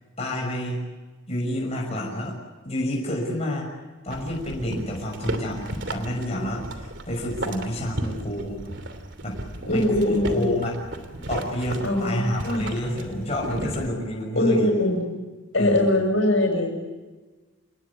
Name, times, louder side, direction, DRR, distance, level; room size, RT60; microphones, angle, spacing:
voice 1, 0.2-0.8 1.3-2.4 2.6-3.7 4.0-8.7 9.2-10.7 11.3-14.7 15.5-15.9, equal, 30° left, -2 dB, 6.3 m, -29 dB
sound 1, 4.1-13.9, right 1 dB, 60° right, 3.0 m, -35 dB
voice 2, 9.7-10.5 11.8-12.7 14.4-15.0 15.5-16.7, left 1 dB, 65° left, 3 dB, 7.5 m, -22 dB
28.5 x 19.5 x 8.4 m, 1.3 s
head